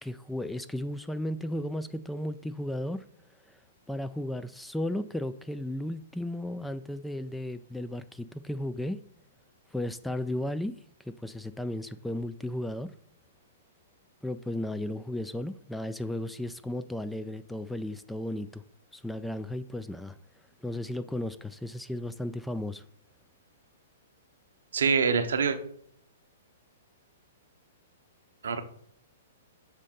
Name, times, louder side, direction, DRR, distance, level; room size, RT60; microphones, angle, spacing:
voice 1, 0.0-3.0 3.5-3.6 3.9-9.0 9.7-10.7 11.1-12.9 14.2-18.6 18.9-20.2 20.6-22.8, left 1 dB, 5° left, 12 dB, 0.3 m, -34 dB
voice 2, 24.7-25.6 28.4-28.6, right 5 dB, 70° right, 9 dB, 0.7 m, -25 dB
6.5 x 4.1 x 3.8 m, 0.64 s
figure-of-eight pair, 115°, 0 cm